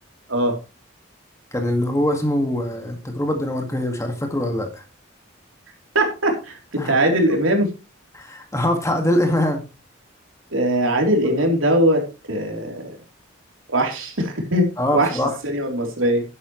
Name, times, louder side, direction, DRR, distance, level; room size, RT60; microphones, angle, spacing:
voice 1, 1.5-4.8 6.8-6.9 8.1-9.6 14.8-15.3, left 1 dB, 15° left, 2.0 m, -23 dB
voice 2, 5.9-7.7 10.5-13.0 13.7-16.2, right 1 dB, 80° right, 3.6 m, -21 dB
11.5 x 11.0 x 3.2 m
head